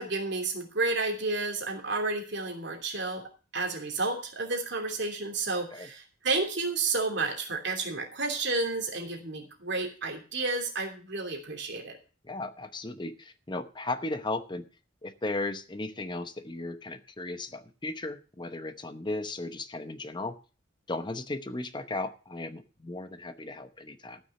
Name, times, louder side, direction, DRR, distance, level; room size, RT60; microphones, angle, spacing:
voice 1, 0.0-3.2 3.5-12.0, right 3 dB, 60° right, 3 dB, 3.0 m, -31 dB
voice 2, 12.2-14.6 15.0-20.4 20.9-24.2, left 2 dB, 25° left, 11 dB, 0.8 m, -36 dB
14.0 x 6.3 x 6.8 m, 0.36 s
head